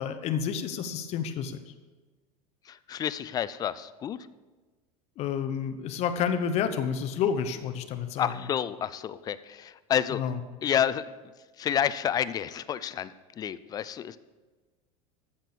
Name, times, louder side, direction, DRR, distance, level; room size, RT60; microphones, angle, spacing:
voice 1, 0.0-1.7 5.2-8.3 10.1-10.4, left 7 dB, 40° left, 8 dB, 1.0 m, -30 dB
voice 2, 2.6-4.2 8.2-10.2 10.6-11.1 11.6-14.2, left 9 dB, 20° left, 15 dB, 0.4 m, -29 dB
14.0 x 6.1 x 6.8 m, 1.3 s
supercardioid pair, 150°, 18 cm